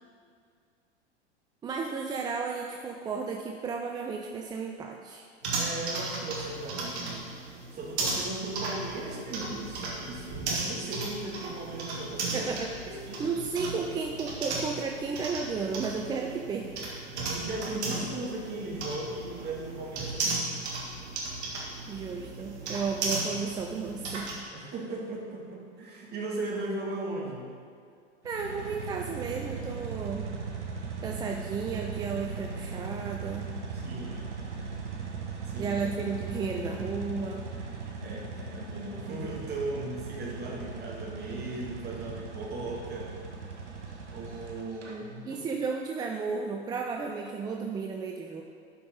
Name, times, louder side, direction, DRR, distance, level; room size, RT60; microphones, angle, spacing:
voice 1, 1.6-5.2 12.3-12.9 13.2-16.9 21.9-24.3 28.2-30.3 31.0-33.5 35.6-37.5 45.3-48.4, right 5 dB, 15° right, 1 dB, 0.3 m, -33 dB
sound 1, 5.4-24.4, right 3 dB, 70° right, 1.9 m, -35 dB
voice 2, 5.5-7.3 7.7-12.5 12.9-13.2 17.2-20.6 24.5-27.5 33.7-34.2 35.5-35.8 38.0-43.2 44.1-45.4, right 2 dB, 30° right, -2 dB, 1.8 m, -37 dB
sound 2, 28.2-44.9, right 4 dB, 90° right, 1.1 m, -38 dB
11.0 x 5.0 x 3.6 m, 2.3 s
hypercardioid pair, 90°, 34 cm